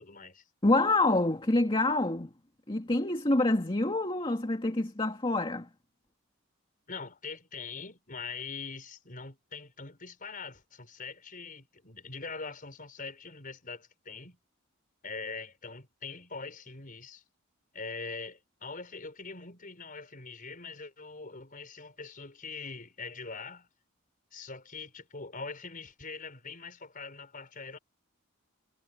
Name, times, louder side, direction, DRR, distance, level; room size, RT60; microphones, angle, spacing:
voice 1, 0.0-0.4 6.9-14.4 15.0-17.2 17.7-23.7 24.3-27.8, left 4 dB, 40° left, 5.0 m, -43 dB
voice 2, 0.6-2.3 2.7-5.7, left 2 dB, 25° left, 2.0 m, -27 dB
head